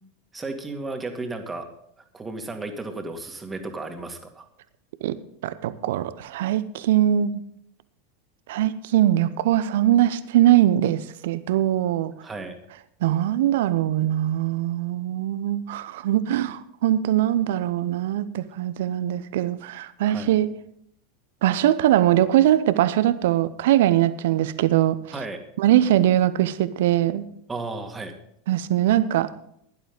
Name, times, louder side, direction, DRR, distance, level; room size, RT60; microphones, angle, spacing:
voice 1, 0.3-1.7 2.1-4.5 12.2-12.6 20.1-20.3 25.1-25.4 27.5-28.1, right 3 dB, 15° right, 4 dB, 2.3 m, -34 dB
voice 2, 5.4-7.4 8.5-12.1 13.0-20.5 21.4-25.0 25.6-27.2 28.5-29.3, right 12 dB, 60° right, 14 dB, 0.8 m, -21 dB
16.0 x 11.5 x 3.9 m, 0.72 s
figure-of-eight pair, 85°, 0 cm